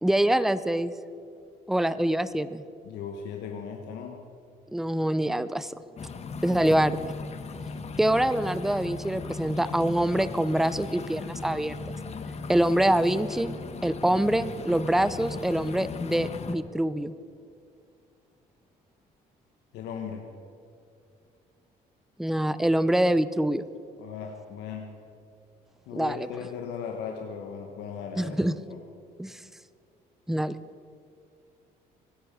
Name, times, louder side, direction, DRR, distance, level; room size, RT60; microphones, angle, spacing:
voice 1, 0.0-0.9 1.7-2.6 4.7-5.7 6.4-7.0 8.0-11.7 12.5-13.6 13.8-17.1 22.2-23.7 25.9-26.3 28.2-28.6 29.2-29.4 30.3-30.6, right 1 dB, ahead, 14 dB, 0.5 m, -25 dB
voice 2, 2.8-4.2 8.1-8.2 19.7-20.2 24.0-24.9 25.9-28.4 28.7-28.8, left 7 dB, 85° left, 2 dB, 1.4 m, -37 dB
sound 1, 6.0-16.5, left 4 dB, 40° left, 1.2 m, -37 dB
24.5 x 10.5 x 5.4 m, 2.4 s
cardioid pair, 110°, 17 cm